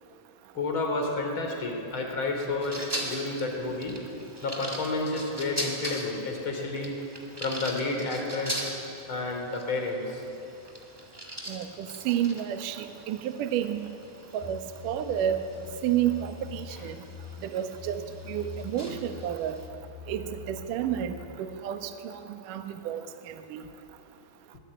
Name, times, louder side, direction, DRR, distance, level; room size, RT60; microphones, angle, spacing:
voice 1, 0.5-4.0 4.4-7.0 7.4-8.7 9.1-10.2, left 2 dB, 25° left, 2 dB, 3.8 m, -30 dB
sound 1, 2.6-19.7, equal, 10° right, 1.7 m, -41 dB
voice 2, 11.5-13.9 14.3-15.5 15.8-17.0 17.4-19.6 20.1-23.6, right 10 dB, 85° right, 7 dB, 1.8 m, -31 dB
sound 2, 14.4-21.3, left 6 dB, 55° left, 3.5 m, -44 dB
24.0 x 19.0 x 8.9 m, 2.9 s
omnidirectional pair, 5.8 m